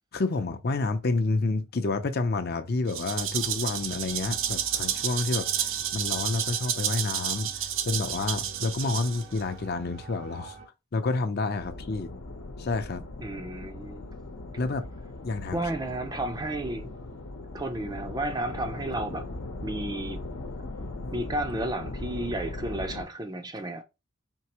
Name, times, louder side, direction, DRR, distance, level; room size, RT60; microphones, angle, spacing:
voice 1, 0.1-5.5 5.9-10.6 10.9-12.1 12.6-13.0 14.6-14.8 15.2-15.6 15.9-16.0, left 3 dB, 50° left, 0.6 m, -29 dB
Rattle (instrument), 2.9-9.4, right 10 dB, 70° right, 0.5 m, -30 dB
sound 1, 3.2-10.7, right 3 dB, 90° right, 2.4 m, -47 dB
sound 2, 11.6-23.1, left 2 dB, 85° left, 0.9 m, -39 dB
voice 2, 13.2-14.1 15.5-16.9 17.5-19.3 19.6-20.2 21.1-23.8, right 1 dB, 20° right, 0.5 m, -32 dB
4.5 x 3.3 x 2.9 m
head